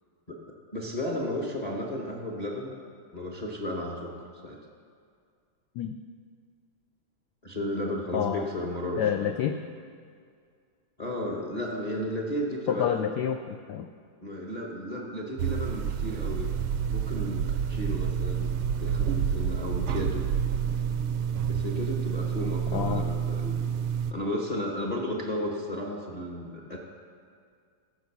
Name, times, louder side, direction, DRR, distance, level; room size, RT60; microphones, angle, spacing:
voice 1, 0.7-2.8 3.1-4.6 7.4-9.3 11.0-13.1 14.2-16.5 16.9-18.5 18.8-20.3 21.5-23.6 24.1-26.8, left 1 dB, 30° left, -1 dB, 0.7 m, -33 dB
voice 2, 8.1-8.5 9.0-9.6 12.7-13.9 22.7-23.0, left 9 dB, 90° left, 7 dB, 0.9 m, -28 dB
sound 1, 15.4-24.1, right 8 dB, 80° right, 1.4 m, -29 dB
15.0 x 6.5 x 5.9 m, 2.2 s
omnidirectional pair, 2.3 m